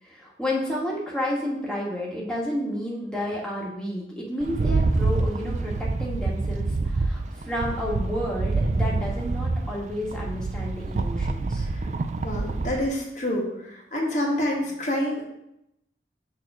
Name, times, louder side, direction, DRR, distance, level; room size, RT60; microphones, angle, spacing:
voice 1, 0.0-11.6, equal, 5° left, -4 dB, 1.4 m, -31 dB
Rattle, 4.4-12.9, right 3 dB, 40° right, 0.3 m, -26 dB
voice 2, 12.2-15.3, left 1 dB, 45° left, -1 dB, 1.3 m, -27 dB
6.5 x 3.0 x 5.9 m, 0.81 s
head